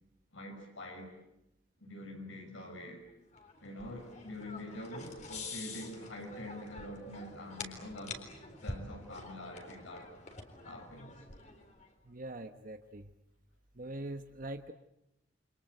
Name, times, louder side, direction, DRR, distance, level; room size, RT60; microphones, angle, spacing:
voice 1, 0.3-1.2 1.8-3.0 3.6-8.2 8.6-10.1 10.6-11.1, left 1 dB, 80° left, 2 dB, 6.2 m, -45 dB
sound 1, 3.3-11.9, left 3 dB, 35° left, 4.0 m, -47 dB
voice 2, 12.0-13.1 13.7-14.7, right 1 dB, 45° right, 7 dB, 1.1 m, -43 dB
29.0 x 26.0 x 7.9 m, 0.85 s
head